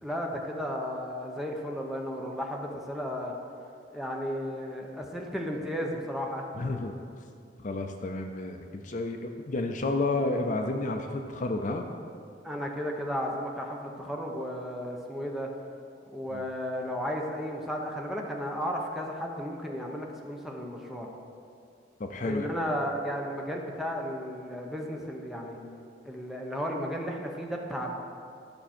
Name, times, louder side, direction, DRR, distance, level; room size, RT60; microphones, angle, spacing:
voice 1, 0.0-3.3 3.9-6.4 12.4-15.5 16.1-21.1 22.2-25.6 26.0-27.9, equal, ahead, 0 dB, 0.9 m, -34 dB
voice 2, 6.6-7.0 7.6-11.9 16.3-16.4 22.0-22.5, left 2 dB, 45° left, 5 dB, 0.5 m, -31 dB
11.5 x 6.0 x 4.3 m, 2.4 s
head